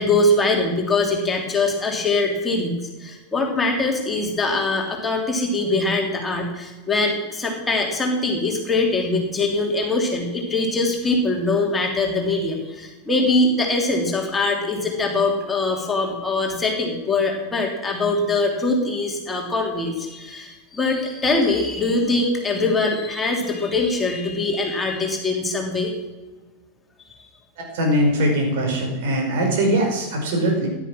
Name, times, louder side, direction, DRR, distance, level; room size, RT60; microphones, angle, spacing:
voice 1, 0.0-25.9 27.0-27.1, left 2 dB, 15° left, 0 dB, 3.1 m, -22 dB
voice 2, 27.6-30.7, right 1 dB, 50° right, 1 dB, 5.0 m, -21 dB
15.5 x 11.5 x 6.3 m, 1.2 s
figure-of-eight pair, 90°, 0 cm